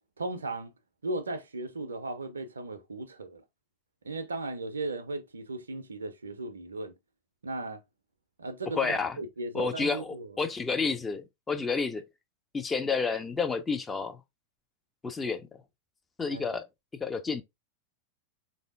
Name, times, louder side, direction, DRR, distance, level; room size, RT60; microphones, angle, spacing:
voice 1, 0.2-0.7 1.0-3.4 4.0-6.9 7.4-7.8 8.4-10.4 16.3-16.4, right 2 dB, 70° right, 0.4 m, -36 dB
voice 2, 8.8-9.2 9.5-12.0 12.5-14.2 15.0-15.4 16.2-16.6 17.0-17.4, left 4 dB, 15° left, 0.4 m, -30 dB
3.5 x 2.6 x 2.4 m
figure-of-eight pair, 90°, 0 cm